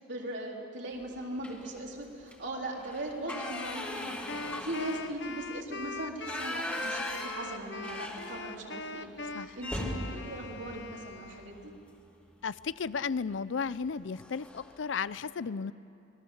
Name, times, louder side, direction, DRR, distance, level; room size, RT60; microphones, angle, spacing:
voice 1, 0.0-11.7, right 1 dB, 75° right, -1 dB, 3.8 m, -39 dB
sound 1, 1.4-1.8 2.2-2.3 2.7-8.8 9.1-9.2 9.6-11.7 13.1-13.3 13.7-13.9 14.1-14.8, left 1 dB, 5° left, 2.4 m, -40 dB
Wind instrument woodwind instrument, 3.3-11.7, left 3 dB, 65° left, 0.8 m, -42 dB
voice 2, 12.4-15.7, left 5 dB, 85° left, 17 dB, 0.5 m, -34 dB
26.0 x 21.0 x 7.3 m, 2.7 s
head